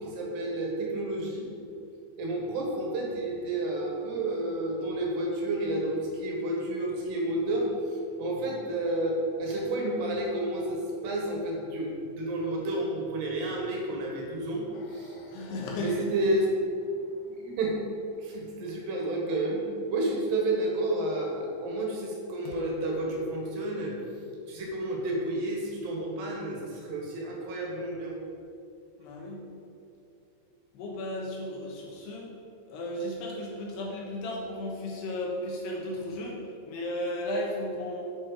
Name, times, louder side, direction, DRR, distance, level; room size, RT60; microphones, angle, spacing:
voice 1, 0.0-1.5 2.2-14.6 14.9-15.4 15.8-16.5 17.3-17.8 18.2-23.9 24.5-28.1, right 1 dB, 65° right, -1 dB, 3.4 m, -31 dB
sound 1, 14.7-19.0 22.5-26.3, left 7 dB, 90° left, 3.0 m, -49 dB
voice 2, 15.3-16.1 29.0-29.5 30.7-32.3 32.7-38.0, left 1 dB, 70° left, -2 dB, 3.0 m, -34 dB
8.6 x 8.1 x 6.4 m, 2.6 s
omnidirectional pair, 5.4 m